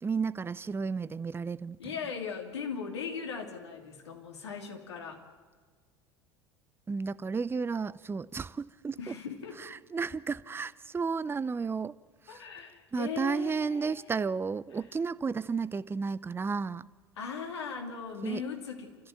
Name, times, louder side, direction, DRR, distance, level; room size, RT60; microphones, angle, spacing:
voice 1, 0.0-1.8 6.9-9.1 9.6-11.9 12.3-12.4 12.9-16.9 18.2-18.4, right 5 dB, 15° right, 0.6 m, -33 dB
voice 2, 1.8-5.2 9.0-9.6 12.3-14.0 17.2-19.0, left 6 dB, 75° left, 3.0 m, -39 dB
28.5 x 14.0 x 9.2 m
figure-of-eight pair, 70°, 14 cm